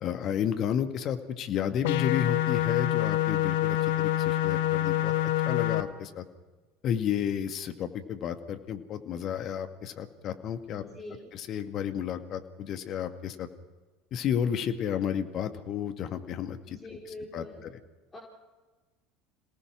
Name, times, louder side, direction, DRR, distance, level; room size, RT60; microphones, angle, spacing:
voice 1, 0.0-5.1 5.4-6.2 6.8-10.8 11.3-13.5 14.1-16.8 17.3-17.4, left 8 dB, 45° left, 8 dB, 2.0 m, -32 dB
sound 1, 1.8-5.8, left 13 dB, 65° left, 1.2 m, -26 dB
voice 2, 10.7-11.3 16.7-17.7 18.1-18.2, left 1 dB, 20° left, -2 dB, 4.6 m, -44 dB
27.5 x 18.0 x 6.2 m, 1.2 s
figure-of-eight pair, 70°, 0 cm